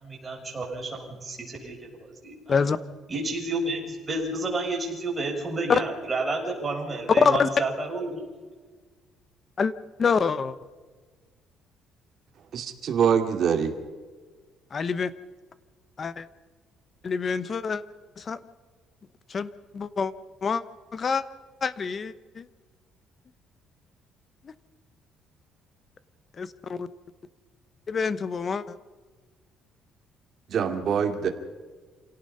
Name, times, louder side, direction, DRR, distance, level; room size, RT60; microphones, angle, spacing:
voice 1, 0.0-2.6 3.1-8.2, right 2 dB, 20° right, -1 dB, 6.2 m, -31 dB
voice 2, 7.2-7.5 9.6-9.7 10.0-10.6 14.7-15.1 16.0-16.3 17.0-17.8 18.2-18.4 19.3-20.1 20.4-20.6 20.9-21.2 21.6-22.5 24.4-24.5 26.4-26.9 27.9-28.8, left 5 dB, 30° left, 15 dB, 1.0 m, -26 dB
voice 3, 12.5-13.8 30.5-31.3, right 7 dB, 50° right, 5 dB, 2.5 m, -24 dB
27.0 x 17.5 x 5.6 m, 1.4 s
cardioid pair, 140°, 0 cm